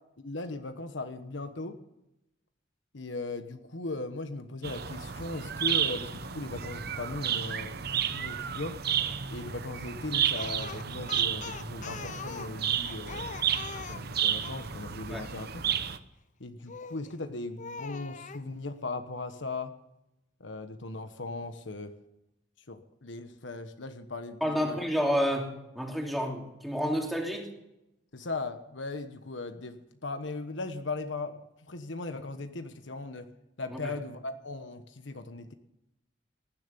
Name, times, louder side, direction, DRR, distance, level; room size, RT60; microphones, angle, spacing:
voice 1, 0.2-1.8 2.9-8.8 9.3-13.3 13.9-15.6 16.4-19.7 20.4-21.9 22.7-24.8 28.1-33.3 33.6-35.5, left 3 dB, 75° left, 8 dB, 1.2 m, -38 dB
sound 1, 4.6-16.0, right 9 dB, 55° right, 0.9 m, -32 dB
Speech, 10.3-14.7 16.7-17.1 17.6-18.4, left 5 dB, 40° left, 0.8 m, -42 dB
voice 2, 24.4-27.5 33.7-33.9, equal, ahead, 0 dB, 3.0 m, -30 dB
19.0 x 11.0 x 6.9 m, 0.88 s
head